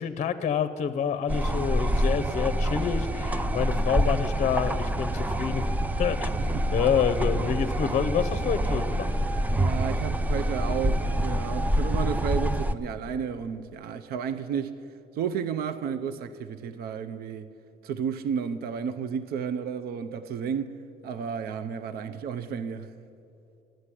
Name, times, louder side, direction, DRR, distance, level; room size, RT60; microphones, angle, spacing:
voice 1, 0.0-5.7 6.0-6.3 6.7-9.1, left 7 dB, 45° left, 0.6 m, -27 dB
sound 1, 1.3-12.7, right 1 dB, 10° right, 0.4 m, -26 dB
voice 2, 9.6-14.8 15.1-17.5 17.8-20.7 21.0-22.9, right 7 dB, 65° right, 0.6 m, -32 dB
11.5 x 7.8 x 9.8 m
cardioid pair, 110°, 17 cm